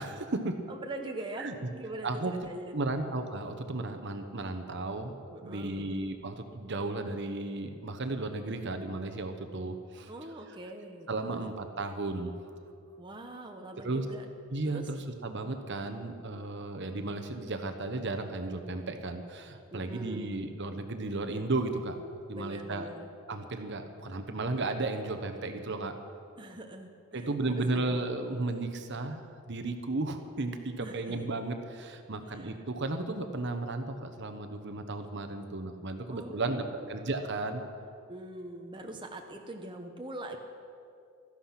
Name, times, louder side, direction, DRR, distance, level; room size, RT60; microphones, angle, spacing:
voice 1, 0.0-0.5 1.4-1.5 2.0-2.3 2.7-5.2 5.4-10.1 11.1-12.3 13.8-14.0 14.5-22.0 22.3-22.9 23.3-25.9 27.1-37.6, right 2 dB, 50° right, 7 dB, 1.1 m, -34 dB
voice 2, 0.7-2.8 5.3-5.9 10.1-11.4 13.0-14.2 14.6-14.9 19.7-20.3 22.3-23.1 26.4-28.0 30.8-31.1 32.3-32.5 36.1-37.1 38.1-40.4, right 1 dB, 20° right, 2 dB, 0.9 m, -43 dB
16.5 x 13.5 x 5.9 m, 2.4 s
head